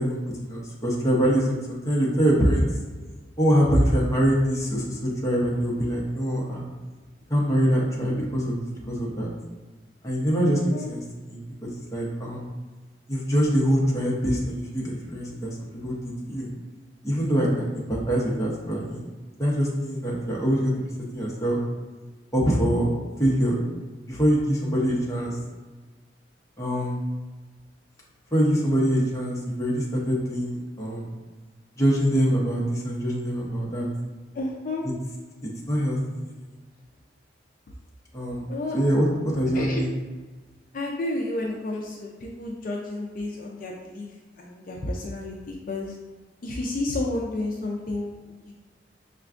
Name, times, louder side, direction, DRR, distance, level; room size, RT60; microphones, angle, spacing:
voice 1, 0.0-2.7 3.4-6.6 7.3-9.3 10.0-12.4 13.1-16.5 17.0-19.1 19.4-20.7 21.1-21.6 22.3-22.9 23.2-23.7 24.1-25.4 26.6-27.0 28.3-31.1 31.8-33.9 35.4-36.0 38.1-38.5 38.7-39.9, equal, 20° left, -4 dB, 0.8 m, -24 dB
voice 2, 34.3-34.8 38.5-38.8 39.5-39.8 40.7-46.0 46.4-48.5, left 2 dB, 50° left, -1 dB, 0.4 m, -31 dB
5.6 x 2.2 x 2.5 m, 1.3 s
head